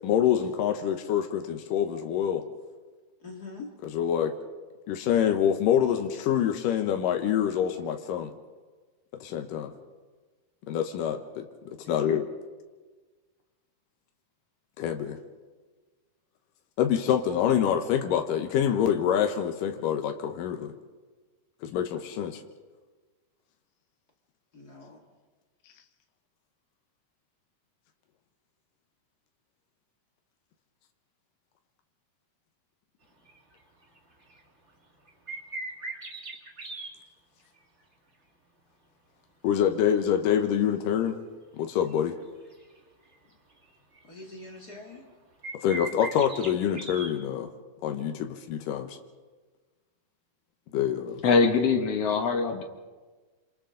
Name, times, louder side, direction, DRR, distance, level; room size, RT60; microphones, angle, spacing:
voice 1, 0.0-2.5 3.8-4.3 4.9-8.3 9.2-9.7 10.7-11.5 11.9-12.3 14.8-15.2 16.8-20.7 21.6-22.4 39.4-41.2 41.6-42.1 45.6-47.5 47.8-49.0 50.7-51.2, left 9 dB, 85° left, 5 dB, 2.7 m, -26 dB
voice 2, 3.2-3.7 11.8-12.2 24.5-25.0 44.1-45.1, left 3 dB, 30° left, 0 dB, 2.4 m, -44 dB
sound 1, 33.3-33.4 33.8-34.0 34.3-34.4 35.1-36.9 41.0-41.1 41.8-42.8 43.1-43.2 43.6-43.7 43.9-45.0 45.4-47.1, right 3 dB, 25° right, 2.1 m, -39 dB
voice 3, 51.2-52.6, left 4 dB, 60° left, 5 dB, 2.0 m, -23 dB
27.5 x 27.0 x 3.9 m, 1.4 s
omnidirectional pair, 3.7 m